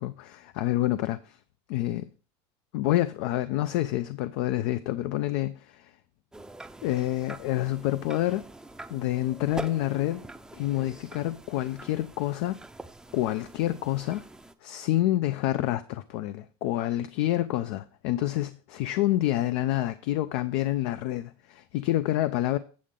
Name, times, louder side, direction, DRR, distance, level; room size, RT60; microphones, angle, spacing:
voice 1, 0.0-1.4 1.7-2.1 2.7-5.9 6.8-8.5 8.9-10.2 10.5-12.6 13.1-14.2 14.6-22.6, left 15 dB, 75° left, 0.5 m, -28 dB
sound 1, 6.3-14.5, right 2 dB, 5° right, 0.5 m, -44 dB
8.4 x 7.4 x 3.7 m
supercardioid pair, 125°, 14 cm